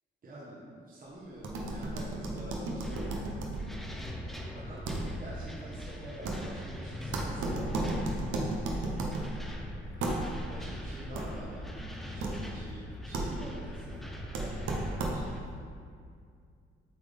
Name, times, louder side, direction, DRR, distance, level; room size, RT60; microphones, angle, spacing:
voice 1, 0.2-3.6 4.5-4.9 5.2-8.2 9.9-14.1 14.4-15.6, right 1 dB, 45° right, -6 dB, 1.3 m, -47 dB
sound 1, 1.4-15.5, right 2 dB, 80° right, 0.9 m, -36 dB
sound 2, 2.8-15.4, equal, ahead, 0.6 m, -42 dB
8.0 x 3.6 x 3.5 m, 2.2 s
cardioid pair, 90°, 20 cm